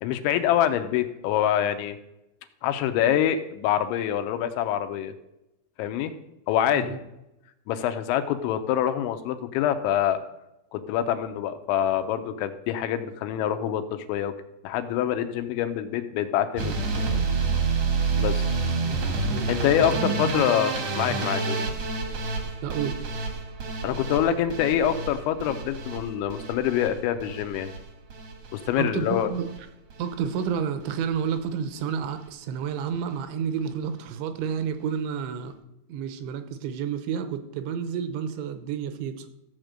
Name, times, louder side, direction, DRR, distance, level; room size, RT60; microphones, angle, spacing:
voice 1, 0.0-2.0 2.6-5.1 5.8-6.1 6.5-7.0 7.7-10.2 10.7-14.3 14.6-16.7 18.2-18.4 19.5-21.6 23.8-27.7 28.5-29.3, left 10 dB, 85° left, 8 dB, 3.1 m, -25 dB
sound 1, 16.6-28.7 29.0-29.6 29.9-30.5 30.8-31.0 31.4-31.5 31.7-31.8, right 4 dB, 65° right, 1.5 m, -29 dB
voice 2, 19.8-20.5 21.1-21.3 22.6-23.0 28.8-29.5 30.0-35.5 35.9-39.3, right 7 dB, 85° right, 9 dB, 3.2 m, -30 dB
14.5 x 5.2 x 7.7 m, 0.89 s
omnidirectional pair, 5.4 m